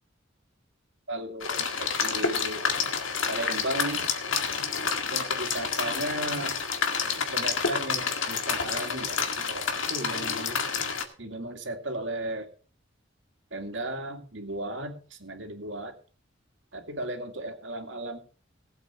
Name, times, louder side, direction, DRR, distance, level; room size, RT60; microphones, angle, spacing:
voice 1, 1.1-2.6 3.3-4.1 5.1-6.5 7.3-10.6 11.2-12.5 13.5-15.9 16.7-18.2, right 1 dB, 65° right, 5 dB, 2.4 m, -35 dB
sound 1, 1.4-11.0, left 5 dB, 80° left, 1.9 m, -29 dB
19.0 x 8.0 x 4.4 m, 0.40 s
head